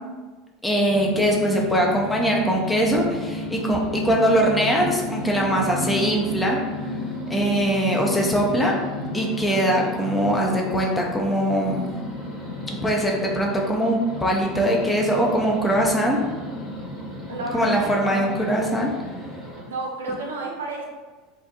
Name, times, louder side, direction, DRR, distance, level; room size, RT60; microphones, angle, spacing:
voice 1, 0.6-6.6 7.3-8.8 9.1-12.0 12.7-16.2 17.5-18.9, equal, 10° left, -1 dB, 0.4 m, -22 dB
sound 1, 0.9-19.6, left 1 dB, 30° left, 0.9 m, -32 dB
voice 2, 17.3-18.3 19.6-20.9, right 2 dB, 70° right, -2 dB, 0.4 m, -31 dB
2.4 x 2.0 x 2.7 m, 1.3 s
figure-of-eight pair, 75°, 0 cm